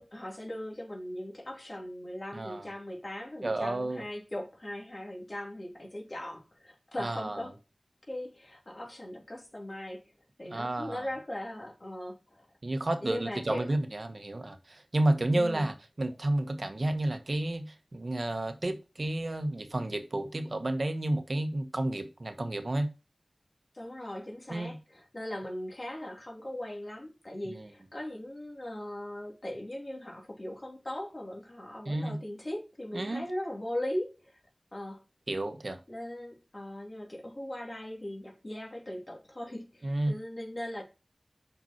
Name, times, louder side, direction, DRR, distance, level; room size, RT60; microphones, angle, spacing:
voice 1, 0.0-7.5 8.1-10.0 10.4-12.5 13.0-13.7 15.3-15.7 23.7-34.3 34.7-35.0 35.9-40.8, left 1 dB, 45° left, 2.9 m, -39 dB
voice 2, 2.3-2.7 3.4-4.0 7.0-7.4 10.4-11.1 12.6-22.9 24.5-24.8 27.5-27.7 31.8-32.2 32.9-33.2 35.3-35.8 39.8-40.1, right 1 dB, 60° right, 1.1 m, -31 dB
5.9 x 5.7 x 4.3 m
wide cardioid pair, 50°, 0 cm